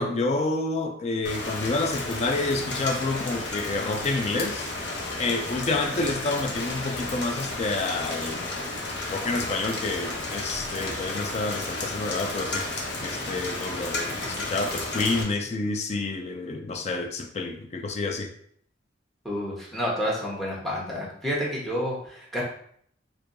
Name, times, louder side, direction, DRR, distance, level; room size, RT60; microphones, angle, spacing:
voice 1, 0.0-4.7 5.2-8.4 9.1-12.7 13.0-18.3, left 3 dB, 35° left, 5 dB, 0.4 m, -29 dB
Rain, 1.2-15.2, left 2 dB, 70° left, 0.8 m, -32 dB
voice 2, 19.2-22.4, equal, ahead, -4 dB, 1.0 m, -29 dB
4.5 x 2.6 x 2.6 m, 0.64 s
head